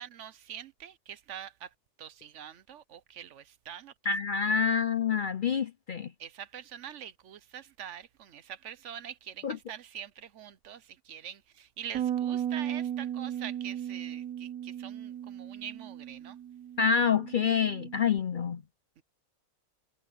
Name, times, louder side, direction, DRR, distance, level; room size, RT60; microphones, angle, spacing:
voice 1, 0.0-1.7 2.0-3.9 6.2-16.4 19.0-19.1, right 9 dB, 65° right, 1.0 m, -44 dB
voice 2, 4.0-6.1 9.4-9.6 16.8-18.6, left 6 dB, 55° left, 0.5 m, -27 dB
Bass guitar, 11.9-18.2, right 10 dB, 85° right, 1.5 m, -36 dB
omnidirectional pair, 1.5 m